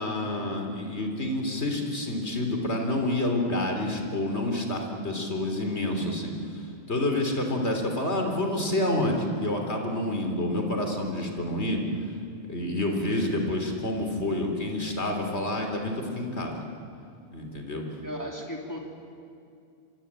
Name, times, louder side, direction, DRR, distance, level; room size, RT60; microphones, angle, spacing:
voice 1, 0.0-11.8 12.5-16.6 17.3-17.8, left 1 dB, 80° left, 3 dB, 3.8 m, -28 dB
voice 2, 18.0-18.8, equal, 15° left, 0 dB, 2.9 m, -35 dB
25.0 x 23.5 x 8.9 m, 2.5 s
omnidirectional pair, 1.1 m